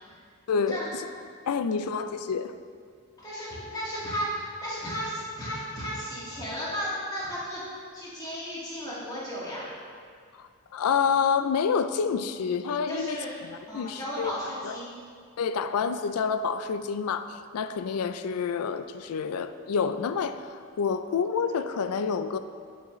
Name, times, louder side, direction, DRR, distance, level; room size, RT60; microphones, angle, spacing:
voice 1, 0.5-0.9 1.5-2.5 10.7-14.3 14.6-14.8 15.4-22.4, left 6 dB, 90° left, 11 dB, 0.4 m, -28 dB
voice 2, 1.5-1.8 3.2-7.6 7.9-9.6 12.9-13.3 13.7-15.0, equal, 15° left, -8 dB, 1.8 m, -34 dB
7.9 x 7.3 x 3.1 m, 2.1 s
head